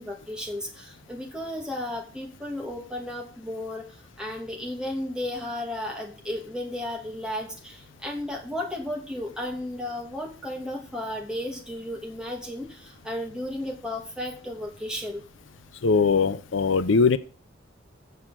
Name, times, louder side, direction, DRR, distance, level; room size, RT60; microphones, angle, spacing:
voice 1, 0.0-15.2, left 1 dB, 5° right, 0 dB, 2.2 m, -34 dB
voice 2, 15.8-17.2, left 4 dB, 85° left, 14 dB, 0.6 m, -21 dB
8.1 x 6.5 x 7.4 m, 0.38 s
head